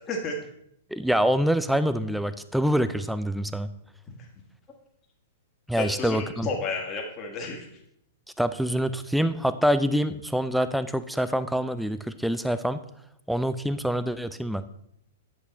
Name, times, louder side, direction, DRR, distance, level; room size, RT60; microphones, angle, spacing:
voice 1, 0.1-0.4 5.7-7.7, left 3 dB, 25° left, 0 dB, 1.7 m, -31 dB
voice 2, 0.9-3.7 5.7-6.5 8.4-12.8 13.3-14.6, equal, ahead, 12 dB, 0.5 m, -25 dB
8.7 x 7.8 x 4.1 m, 0.76 s
figure-of-eight pair, 105°, 0 cm